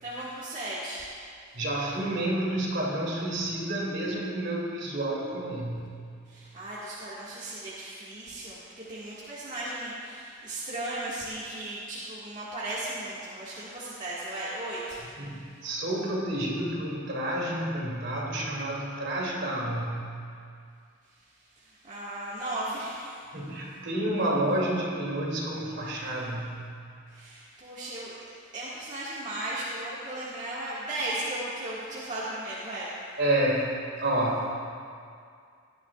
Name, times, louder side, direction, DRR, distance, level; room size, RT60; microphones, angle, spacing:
voice 1, 0.0-1.2 6.3-15.0 21.6-23.2 27.1-28.1 28.5-32.9, right 1 dB, 35° right, -10 dB, 1.8 m, -36 dB
voice 2, 1.5-6.0 15.2-20.1 23.3-26.7 33.2-34.5, right 1 dB, 55° right, -4 dB, 2.7 m, -29 dB
18.0 x 11.5 x 2.4 m, 2.3 s
head